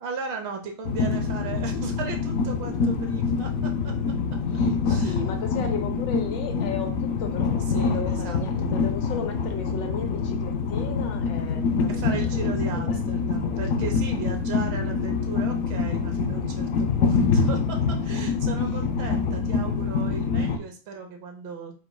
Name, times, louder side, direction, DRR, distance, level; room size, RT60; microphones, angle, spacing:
voice 1, 0.0-4.4 4.8-5.2 7.7-8.7 11.9-21.7, right 5 dB, 70° right, 3 dB, 1.6 m, -36 dB
Train, 0.8-20.6, left 5 dB, 85° left, 0.7 m, -25 dB
voice 2, 4.5-13.0, left 6 dB, 70° left, 6 dB, 1.3 m, -35 dB
5.0 x 4.5 x 2.2 m, 0.36 s
omnidirectional pair, 2.2 m